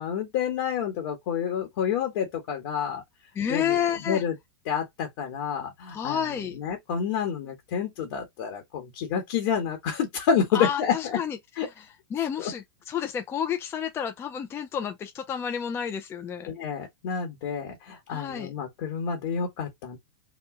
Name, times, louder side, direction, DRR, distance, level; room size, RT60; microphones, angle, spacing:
voice 1, 0.0-3.0 3.5-3.8 4.1-4.3 4.7-11.2 11.6-11.7 12.4-12.5 16.5-20.0, left 7 dB, 60° left, 1.2 m, -29 dB
voice 2, 3.4-4.2 5.9-6.6 10.5-11.4 11.8-11.9 12.1-16.5 18.1-18.5, left 8 dB, 20° left, 0.4 m, -30 dB
3.0 x 2.2 x 3.5 m
hypercardioid pair, 135°, 13 cm